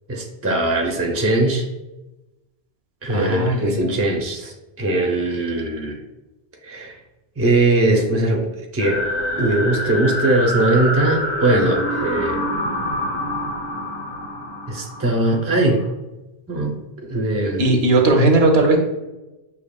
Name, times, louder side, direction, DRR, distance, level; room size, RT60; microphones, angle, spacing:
voice 1, 0.1-1.7 3.0-6.0 6.6-7.0 7.4-8.5 8.7-9.0 9.4-12.4 14.7-15.9 16.5-16.8 17.1-17.6, right 2 dB, 20° right, 1 dB, 0.5 m, -20 dB
voice 2, 3.1-4.0 17.6-18.8, right 2 dB, 70° right, 3 dB, 1.0 m, -17 dB
sound 1, 8.8-15.7, equal, 65° left, 1.3 m, -26 dB
6.8 x 2.8 x 2.3 m, 1.0 s
omnidirectional pair, 1.1 m